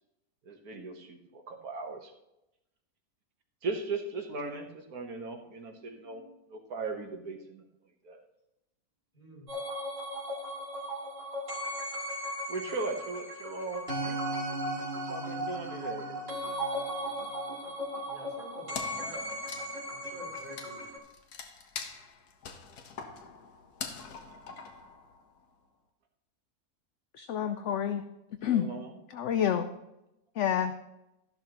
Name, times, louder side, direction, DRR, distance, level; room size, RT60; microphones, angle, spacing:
voice 1, 0.4-2.1 3.6-6.2 6.5-7.6 8.0-8.2 12.5-14.2 15.1-16.3 28.5-29.0, right 3 dB, 75° right, 3 dB, 1.7 m, -38 dB
voice 2, 5.7-6.3 9.1-9.5 18.1-20.9, left 1 dB, 30° left, -4 dB, 4.6 m, -50 dB
sound 1, 9.5-21.0, equal, 40° right, 2.8 m, -36 dB
Wood, 18.7-25.5, left 5 dB, 90° left, 1.6 m, -44 dB
voice 3, 27.1-28.0 28.4-28.7 29.1-29.6 30.4-30.7, left 9 dB, 65° left, 9 dB, 0.8 m, -28 dB
13.5 x 11.0 x 2.9 m, 0.89 s
omnidirectional pair, 1.6 m